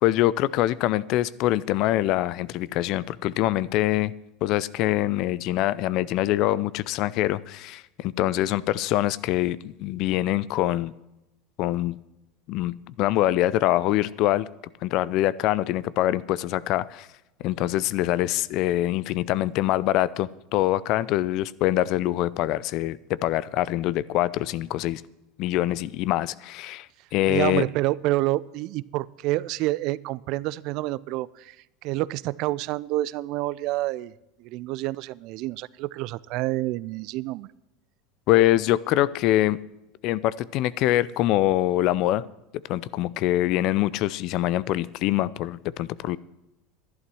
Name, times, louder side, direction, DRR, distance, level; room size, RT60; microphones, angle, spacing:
voice 1, 0.0-4.1 4.4-10.9 11.6-12.0 12.5-14.5 14.8-17.1 17.4-25.0 25.4-26.9 27.1-27.6 38.3-39.6 40.0-42.2 42.7-46.2, left 15 dB, 55° left, 19 dB, 0.5 m, -24 dB
voice 2, 27.3-31.6 31.8-34.1 34.4-37.5, right 18 dB, 60° right, 21 dB, 0.4 m, -28 dB
11.5 x 11.5 x 6.2 m, 0.93 s
hypercardioid pair, 85°, 0 cm